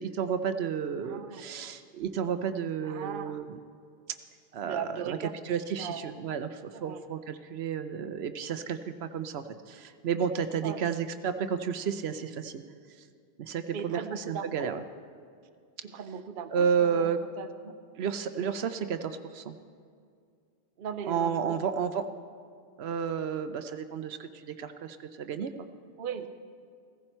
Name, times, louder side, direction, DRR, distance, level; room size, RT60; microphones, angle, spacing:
voice 1, 0.0-3.6 4.5-5.2 5.4-12.6 13.4-14.8 16.5-17.2 18.0-19.5 21.1-22.1 22.8-25.5, right 7 dB, 85° right, 9 dB, 0.9 m, -31 dB
voice 2, 1.0-1.4 2.8-3.4 4.6-5.4 5.8-6.1 6.7-7.0 10.6-10.8 13.7-14.7 15.8-17.1 17.4-17.8 20.8-21.6 26.0-26.3, right 7 dB, 60° right, 8 dB, 0.8 m, -38 dB
16.0 x 15.0 x 4.5 m, 2.3 s
omnidirectional pair, 1.0 m